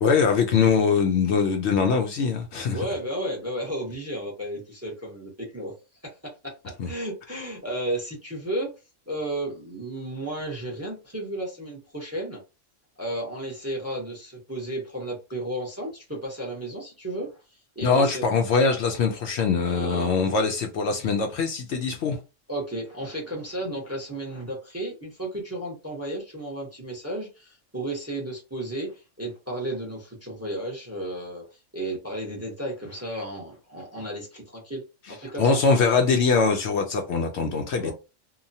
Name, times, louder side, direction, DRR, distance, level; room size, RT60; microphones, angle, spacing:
voice 1, 0.0-2.8 6.8-6.9 17.8-22.2 35.4-37.9, left 5 dB, 65° left, 0.8 m, -22 dB
voice 2, 2.7-5.7 6.0-8.7 9.1-12.4 13.0-18.2 19.6-20.1 22.5-34.8 35.1-35.6 37.8-37.9, right 1 dB, 15° right, 0.7 m, -33 dB
2.9 x 2.2 x 2.7 m
omnidirectional pair, 1.3 m